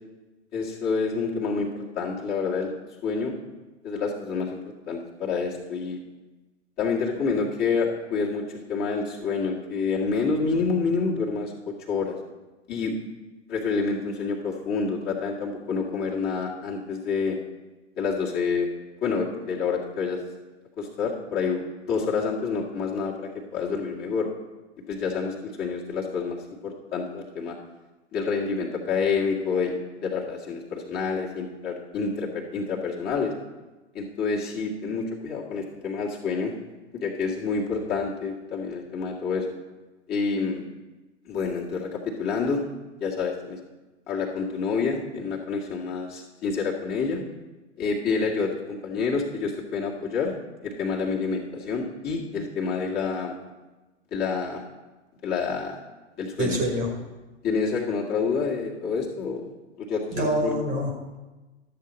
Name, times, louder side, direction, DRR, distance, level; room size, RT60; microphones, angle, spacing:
voice 1, 0.5-2.8 3.0-3.3 3.8-4.6 4.9-6.0 6.8-12.2 12.7-12.9 13.5-17.4 18.0-18.7 19.0-20.2 20.8-21.6 21.9-24.3 24.9-26.4 26.6-27.6 28.1-33.3 33.9-36.5 36.9-39.5 40.1-40.6 41.3-42.6 43.0-43.6 44.1-47.2 47.8-50.3 50.6-53.3 54.1-54.6 55.2-55.8 56.2-56.6 57.4-59.5 59.8-60.6, left 5 dB, 25° left, -4 dB, 1.8 m, -28 dB
voice 2, 56.4-56.9 60.1-61.2, equal, 20° right, 3 dB, 1.3 m, -26 dB
12.0 x 7.6 x 4.2 m, 1.2 s
figure-of-eight pair, 105°, 36 cm